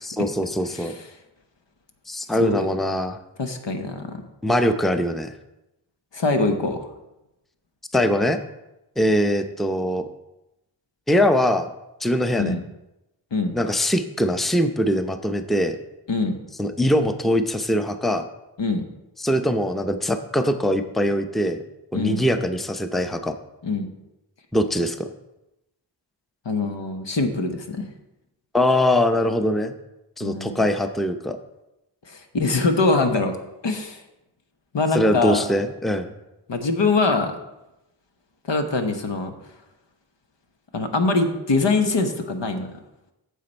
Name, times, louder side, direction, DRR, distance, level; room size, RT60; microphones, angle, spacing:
voice 1, 0.0-0.9 2.1-3.2 4.4-5.3 7.9-8.4 9.0-10.0 11.1-11.7 12.0-12.6 13.5-15.8 16.6-18.3 19.2-21.6 21.9-23.3 24.5-25.1 28.5-29.7 30.2-31.4 34.9-36.1, equal, ahead, 8 dB, 0.7 m, -22 dB
voice 2, 3.4-4.2 6.1-6.8 12.4-12.6 13.3-13.5 16.1-16.4 18.6-18.8 21.9-22.2 23.6-23.9 26.4-27.9 30.2-30.6 32.1-33.4 33.6-34.0 34.7-35.4 36.5-37.3 38.5-39.3 40.7-42.7, left 3 dB, 75° left, 6 dB, 1.2 m, -23 dB
9.3 x 6.9 x 4.4 m, 0.94 s
cardioid pair, 45°, 43 cm